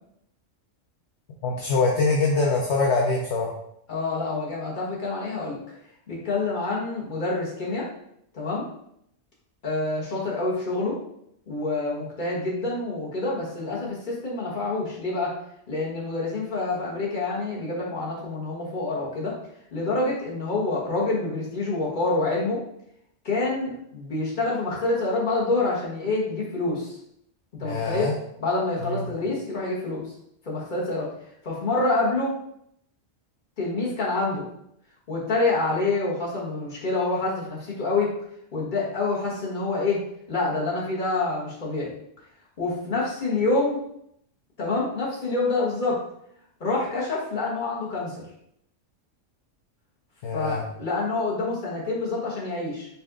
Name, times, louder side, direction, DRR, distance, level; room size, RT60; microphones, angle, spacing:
voice 1, 1.4-3.5 27.6-28.2 28.8-29.1 50.2-50.6, left 3 dB, 65° left, -2 dB, 0.9 m, -24 dB
voice 2, 3.9-5.6 6.1-7.8 8.3-8.7 9.6-11.0 11.5-15.3 15.7-19.3 19.7-22.6 23.2-27.0 27.6-28.1 28.4-30.0 30.4-31.1 31.4-32.3 33.6-34.4 35.1-38.2 38.5-40.0 40.3-41.9 42.6-43.8 44.6-46.0 46.6-48.2 50.3-52.9, left 3 dB, 40° left, -4 dB, 1.4 m, -27 dB
5.6 x 2.5 x 3.6 m, 0.74 s
omnidirectional pair, 1.3 m